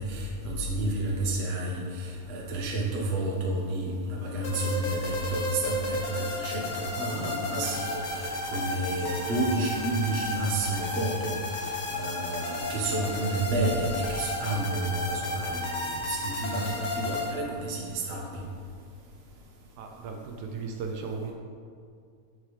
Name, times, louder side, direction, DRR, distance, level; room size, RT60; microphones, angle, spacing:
voice 1, 0.0-18.3, right 2 dB, 60° right, -3 dB, 0.6 m, -30 dB
sound 1, 4.4-17.3, left 1 dB, 75° left, 0.8 m, -33 dB
sound 2, 7.0-14.8, left 1 dB, 45° left, 1.9 m, -48 dB
voice 2, 19.8-21.3, right 5 dB, 80° right, 2 dB, 2.1 m, -36 dB
13.0 x 5.8 x 3.3 m, 2.3 s
omnidirectional pair, 3.5 m